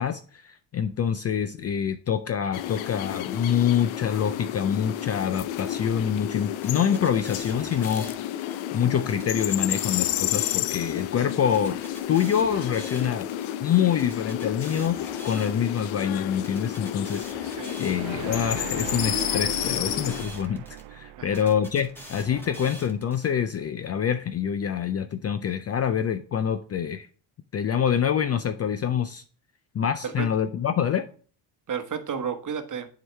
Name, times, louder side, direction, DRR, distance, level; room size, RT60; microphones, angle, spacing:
voice 1, 0.0-8.2 8.7-11.8 12.1-13.3 13.6-15.0 15.2-20.6 20.9-27.1 27.5-29.2 29.7-31.0, left 8 dB, 35° left, 0.4 m, -26 dB
sound 1, 2.5-20.3, left 12 dB, 75° left, 0.6 m, -31 dB
sound 2, 6.6-8.6 9.1-11.0 11.5-13.5 14.0-15.9 16.4-18.4 18.9-20.8 21.3-23.3, equal, 5° left, 1.6 m, -44 dB
voice 2, 17.4-17.8 21.2-21.5 30.0-30.3 31.7-32.9, right 7 dB, 40° right, 1.1 m, -32 dB
sound 3, 17.8-22.9, right 14 dB, 65° right, 0.5 m, -39 dB
7.7 x 4.7 x 3.3 m
cardioid pair, 90°, 48 cm